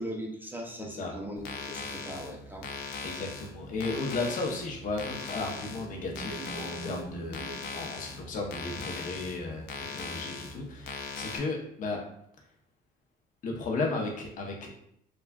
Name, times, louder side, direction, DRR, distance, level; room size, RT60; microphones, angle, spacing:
voice 1, 0.0-2.7, equal, 10° right, -1 dB, 0.5 m, -39 dB
voice 2, 0.8-1.1 3.0-7.4 7.7-9.6 9.9-12.0 13.4-14.7, left 3 dB, 50° left, 0 dB, 0.7 m, -34 dB
sound 1, 1.4-11.4, left 4 dB, 85° left, 0.5 m, -40 dB
sound 2, 5.4-8.9, right 2 dB, 65° right, 0.7 m, -44 dB
3.4 x 2.3 x 2.2 m, 0.71 s
cardioid pair, 110°, 17 cm